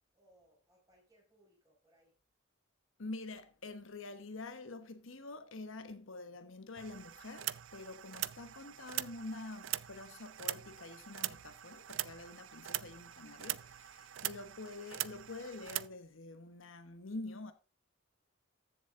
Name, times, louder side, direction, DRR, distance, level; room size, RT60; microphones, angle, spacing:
voice 1, 0.1-2.2, right 1 dB, 15° right, 5.6 m, -68 dB
voice 2, 3.0-17.5, left 2 dB, 75° left, 1.1 m, -47 dB
sound 1, 6.8-15.9, right 14 dB, 70° right, 0.5 m, -42 dB
14.0 x 7.3 x 3.7 m
head